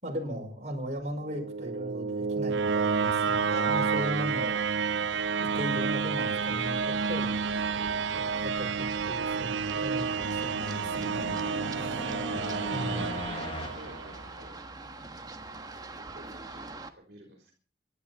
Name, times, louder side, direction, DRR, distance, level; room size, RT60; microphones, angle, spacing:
voice 1, 0.0-4.6 5.4-7.5 8.4-11.4 11.8-12.0 12.7-13.1, equal, 40° right, 0 dB, 5.7 m, -37 dB
sound 1, 1.2-14.2, right 5 dB, 80° right, 0.7 m, -30 dB
Run, 6.9-16.9, right 3 dB, 20° right, 1.3 m, -45 dB
voice 2, 7.4-7.9 13.3-14.6 15.5-17.6, right 1 dB, 60° right, 2 dB, 4.0 m, -51 dB
sound 2, 10.0-14.9, left 1 dB, 30° left, 1.3 m, -40 dB
25.5 x 12.0 x 4.2 m, 0.39 s
head